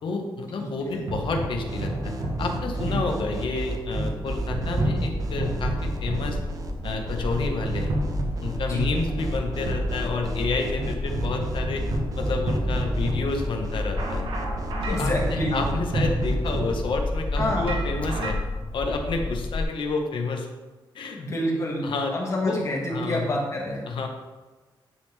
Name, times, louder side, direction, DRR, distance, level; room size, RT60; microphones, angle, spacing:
voice 1, 0.0-2.1 2.4-6.4 6.8-7.9 8.4-11.9 12.2-14.3 14.9-18.4 18.7-20.5 20.9-21.2 21.8-22.1 22.4-22.6 22.9-23.2 23.9-24.1, left 3 dB, 70° left, 3 dB, 0.9 m, -29 dB
voice 2, 0.6-1.0 2.8-3.0 8.6-8.9 14.9-15.6 17.3-17.7 21.2-21.9 22.1-23.8, left 1 dB, 35° left, -2 dB, 1.4 m, -28 dB
sound 1, 0.7-18.3, right 1 dB, 75° right, 1.1 m, -31 dB
sound 2, 1.7-16.6, right 2 dB, 40° right, 0.6 m, -35 dB
sound 3, 4.2-19.6, left 2 dB, 15° left, 0.5 m, -32 dB
9.8 x 3.6 x 3.3 m, 1.3 s
wide cardioid pair, 165°, 9 cm